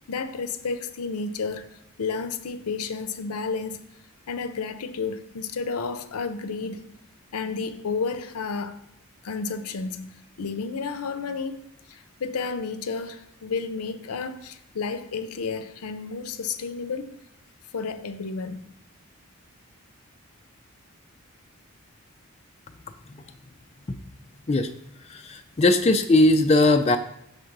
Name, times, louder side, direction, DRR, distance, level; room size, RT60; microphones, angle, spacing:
voice 1, 0.1-3.8 4.3-6.8 7.3-8.8 9.2-17.2 17.7-18.7, left 4 dB, 85° left, 0.5 m, -31 dB
voice 2, 25.1-27.0, left 2 dB, 30° left, 0.3 m, -19 dB
6.6 x 3.6 x 5.8 m
head